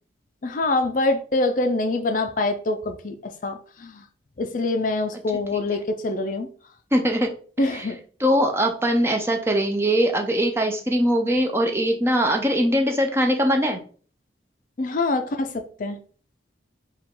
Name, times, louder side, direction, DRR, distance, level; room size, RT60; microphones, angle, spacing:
voice 1, 0.4-4.0 4.4-6.5 7.6-8.0 14.8-16.0, left 2 dB, 45° left, 0.4 m, -25 dB
voice 2, 6.9-7.3 7.7-7.9 8.2-13.8, equal, 15° right, 0.5 m, -21 dB
4.7 x 2.4 x 3.7 m
head